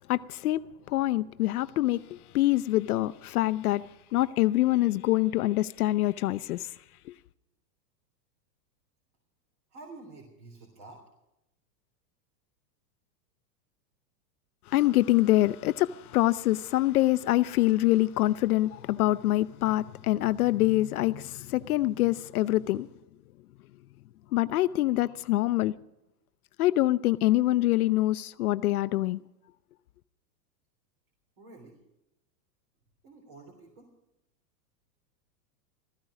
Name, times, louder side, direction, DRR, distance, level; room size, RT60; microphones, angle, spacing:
voice 1, 0.1-0.6 0.9-3.8 4.1-6.7 14.7-22.9 24.3-25.7 26.6-29.2, left 16 dB, 60° left, 0.6 m, -25 dB
voice 2, 9.7-11.0 31.4-31.8 33.0-33.9, right 3 dB, 40° right, 3.6 m, -49 dB
16.0 x 14.5 x 5.0 m
supercardioid pair, 175°, 50 cm